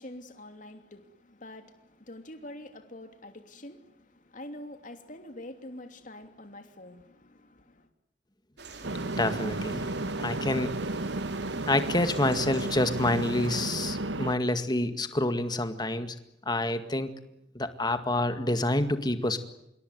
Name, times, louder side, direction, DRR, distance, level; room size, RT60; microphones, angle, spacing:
voice 1, 0.0-7.9, left 1 dB, 45° left, 3.0 m, -46 dB
sound 1, 8.6-13.6, right 3 dB, 65° right, 4.1 m, -45 dB
sound 2, 8.8-14.4, right 2 dB, 80° right, 1.3 m, -33 dB
voice 2, 9.2-9.9 10.2-10.7 11.7-16.2 16.5-17.1 17.6-19.4, left 1 dB, 25° left, 2.0 m, -27 dB
27.0 x 23.0 x 9.5 m
head